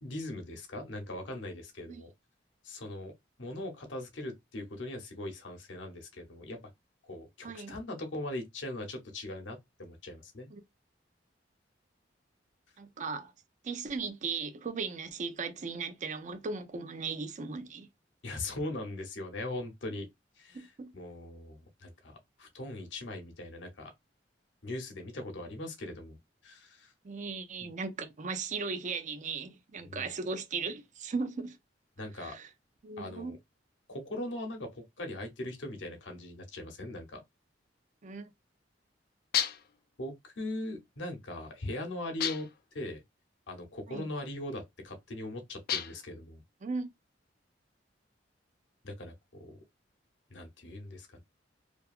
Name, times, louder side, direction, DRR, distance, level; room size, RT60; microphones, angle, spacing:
voice 1, 0.0-2.1 2.6-3.1 3.4-6.6 7.0-10.5 18.2-20.1 20.4-23.9 24.6-26.2 26.4-26.9 29.8-30.1 32.0-32.4 33.0-33.3 33.9-37.2 40.0-42.5 42.7-43.0 43.5-46.4 48.8-49.1 49.4-49.6 50.3-51.2, left 1 dB, 75° left, 0.8 m, -40 dB
voice 2, 7.4-7.7 10.5-10.6 12.8-13.3 13.6-17.9 20.5-20.9 27.0-31.6 32.2-32.5 32.8-33.3 38.0-38.3 43.9-44.1 46.6-46.9, right 4 dB, 40° right, 0.4 m, -37 dB
sound 1, 39.3-39.8 42.2-42.7 45.7-46.1, left 9 dB, 55° left, 0.3 m, -32 dB
2.7 x 2.3 x 2.3 m
head